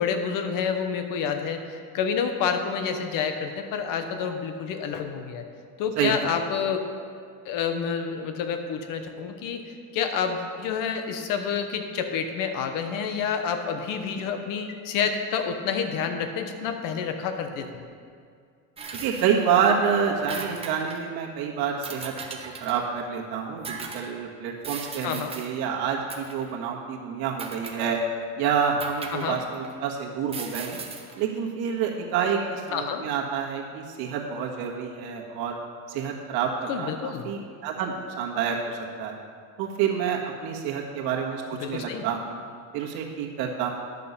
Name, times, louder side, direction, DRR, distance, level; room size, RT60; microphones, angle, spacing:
voice 1, 0.0-5.4 5.8-6.9 7.4-17.9 25.0-25.3 29.1-29.4 32.7-33.0 36.7-37.3 41.6-42.0, left 6 dB, 55° left, 6 dB, 1.0 m, -29 dB
sound 1, 18.8-19.7 20.0-21.1 21.8-22.9 23.6-24.1 24.6-25.5 26.1-26.5 27.4-28.1 28.8-29.8 30.3-31.2, right 5 dB, 15° right, 0.6 m, -38 dB
voice 2, 19.0-22.1 22.6-28.0 28.3-30.8 31.2-35.6 35.9-39.2 39.6-41.4 41.7-42.4 42.7-43.7, right 7 dB, 65° right, -1 dB, 1.7 m, -28 dB
11.0 x 6.7 x 5.5 m, 2.2 s
cardioid pair, 170°, 39 cm